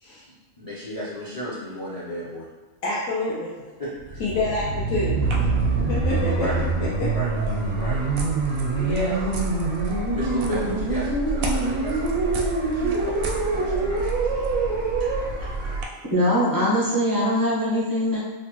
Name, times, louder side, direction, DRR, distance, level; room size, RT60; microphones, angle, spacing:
voice 1, 0.6-2.5 3.8-4.2 6.4-6.5 7.1-7.3 7.7-8.0 10.1-14.1 15.0-15.1 15.4-15.5, equal, 45° left, -9 dB, 0.5 m, -34 dB
voice 2, 2.8-3.5 4.2-5.5 5.9-6.5 6.8-7.1 8.6-9.2 11.5-11.6, left 2 dB, 80° left, -8 dB, 1.1 m, -27 dB
sound 1, 4.0-15.2, right 3 dB, 80° right, 1.0 m, -25 dB
sound 2, 5.2-15.8, right 2 dB, 65° right, 0.7 m, -30 dB
voice 3, 16.1-18.2, equal, 35° right, -8 dB, 0.3 m, -22 dB
3.0 x 2.1 x 2.9 m, 1.2 s
omnidirectional pair, 1.4 m